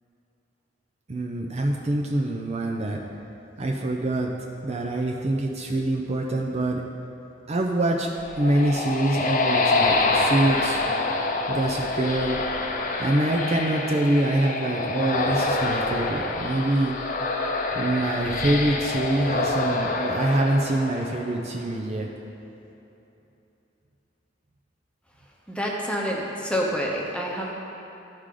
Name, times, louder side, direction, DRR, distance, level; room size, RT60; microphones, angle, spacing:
voice 1, 1.1-3.0 3.6-4.3 4.6-6.8 7.5-8.1 8.4-10.8 11.5-12.4 13.0-17.0 17.7-22.1, right 1 dB, 35° right, 0 dB, 0.5 m, -25 dB
sound 1, 8.0-21.6, left 3 dB, 45° left, 0.7 m, -26 dB
voice 2, 25.5-27.5, equal, 5° left, -3 dB, 1.0 m, -27 dB
13.0 x 4.9 x 3.8 m, 3.0 s
head